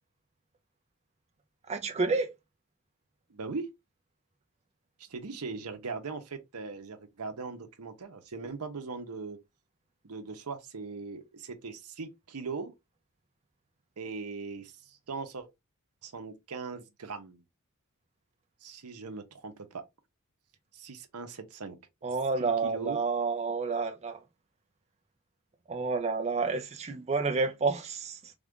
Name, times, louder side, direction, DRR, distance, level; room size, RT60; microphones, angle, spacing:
voice 1, 1.7-2.3 22.0-24.2 25.7-28.3, right 4 dB, 30° right, 0.5 m, -30 dB
voice 2, 3.3-3.7 5.0-9.4 10.0-12.8 14.0-15.5 16.0-17.4 18.6-19.8 20.7-21.8 22.4-23.0, right 4 dB, 80° right, 0.8 m, -40 dB
3.5 x 2.5 x 3.5 m
head